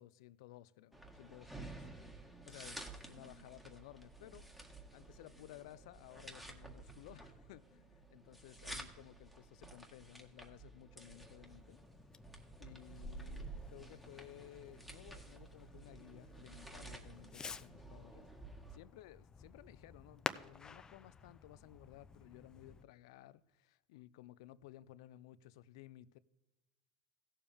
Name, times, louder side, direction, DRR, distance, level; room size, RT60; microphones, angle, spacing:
voice 1, 0.0-1.9 2.5-4.5 4.9-11.8 12.6-18.3 18.7-26.2, left 14 dB, 80° left, 0.4 m, -57 dB
sound 1, 0.9-18.8, right 2 dB, 5° right, 1.8 m, -52 dB
Fireworks, 11.4-22.8, left 5 dB, 25° left, 0.6 m, -51 dB
16.5 x 7.1 x 3.5 m
supercardioid pair, 95°, 3 cm